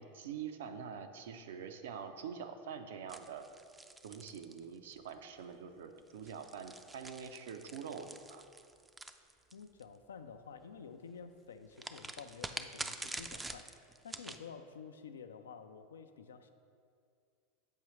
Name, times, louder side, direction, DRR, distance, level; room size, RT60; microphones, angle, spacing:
voice 1, 0.0-3.4 4.0-8.5, right 7 dB, 75° right, 8 dB, 0.4 m, -45 dB
sound 1, 3.1-5.1 6.1-9.8 11.8-14.4, right 2 dB, 10° right, 0.3 m, -46 dB
voice 2, 9.5-16.5, left 6 dB, 90° left, 9 dB, 0.3 m, -51 dB
7.2 x 4.8 x 3.1 m, 2.3 s
hypercardioid pair, 95°, 0 cm